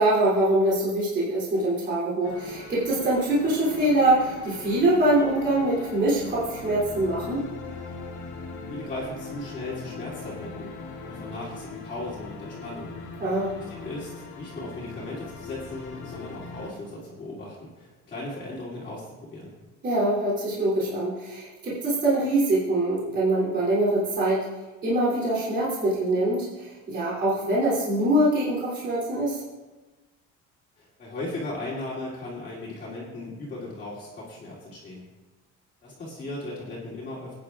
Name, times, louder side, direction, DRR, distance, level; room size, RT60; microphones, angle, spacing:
voice 1, 0.0-7.4 13.2-13.6 19.8-24.5 24.8-29.4, right 1 dB, 35° right, -7 dB, 3.2 m, -24 dB
sound 1, 2.2-16.7, left 4 dB, 80° left, 2.5 m, -40 dB
voice 2, 8.7-10.7 11.0-12.9 13.5-19.5 30.8-35.1 35.8-37.3, left 2 dB, 30° left, -8 dB, 2.8 m, -37 dB
20.0 x 9.5 x 2.5 m, 1.2 s
cardioid pair, 155°, 29 cm